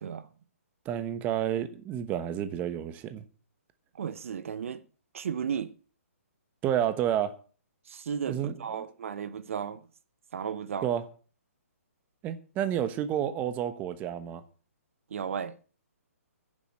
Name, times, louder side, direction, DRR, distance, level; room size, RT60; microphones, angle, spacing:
voice 1, 0.8-3.2 6.6-7.3 8.3-8.8 10.8-11.0 12.2-14.4, right 10 dB, 20° right, 1.1 m, -30 dB
voice 2, 3.9-4.8 5.1-5.7 7.9-9.8 10.3-10.9 15.1-15.6, right 7 dB, 60° right, 0.9 m, -34 dB
10.5 x 7.1 x 7.7 m
hypercardioid pair, 150°, 8 cm